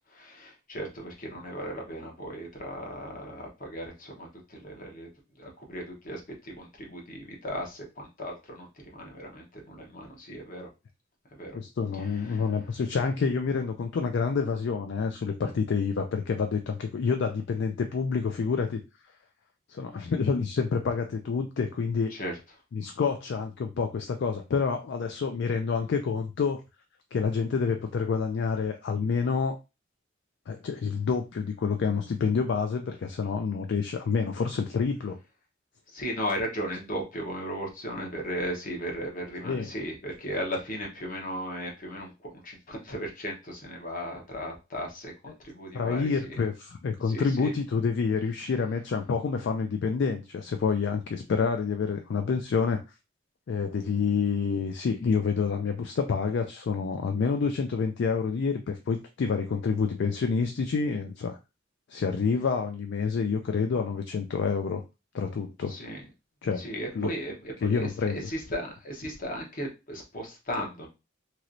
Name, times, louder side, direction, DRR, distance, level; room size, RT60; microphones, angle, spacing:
voice 1, 0.1-5.1 5.4-10.7 11.3-11.6 12.0-12.5 22.1-22.4 35.9-46.4 47.1-47.5 65.7-66.0 66.6-70.9, equal, 45° left, 0 dB, 1.0 m, -36 dB
voice 2, 11.5-18.8 19.7-22.1 22.7-26.6 27.1-29.6 30.5-35.2 39.4-39.7 45.7-52.8 53.5-61.4 61.9-64.8 65.1-65.7 66.4-67.1 67.6-68.3, left 5 dB, 60° left, 5 dB, 0.3 m, -28 dB
3.1 x 2.9 x 2.6 m, 0.27 s
head